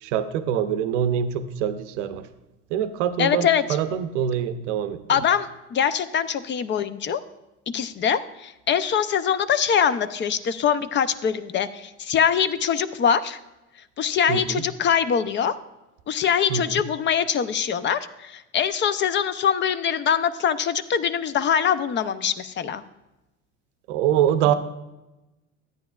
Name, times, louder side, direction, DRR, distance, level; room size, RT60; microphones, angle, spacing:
voice 1, 0.0-2.3 2.7-5.0 14.3-14.6 16.5-16.8 23.9-24.5, right 9 dB, 90° right, 10 dB, 0.7 m, -24 dB
voice 2, 3.2-3.6 5.1-7.2 7.7-13.4 14.0-15.5 16.1-22.8, left 8 dB, 30° left, 14 dB, 0.5 m, -23 dB
13.0 x 9.4 x 2.3 m, 1.0 s
supercardioid pair, 105°, 36 cm